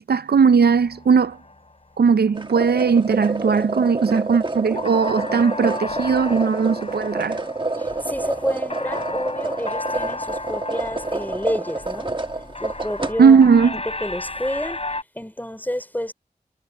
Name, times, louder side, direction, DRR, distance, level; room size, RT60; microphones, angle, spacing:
voice 1, 0.0-1.4 2.0-7.4 13.2-13.7, right 5 dB, 80° right, 0.5 m, -18 dB
sound 1, 0.6-15.0, left 2 dB, 40° left, 6.8 m, -34 dB
sound 2, 2.3-13.1, right 2 dB, 30° right, 1.3 m, -28 dB
voice 2, 7.8-12.1 12.6-16.1, left 1 dB, 10° left, 4.9 m, -30 dB
wide cardioid pair, 60°, 16 cm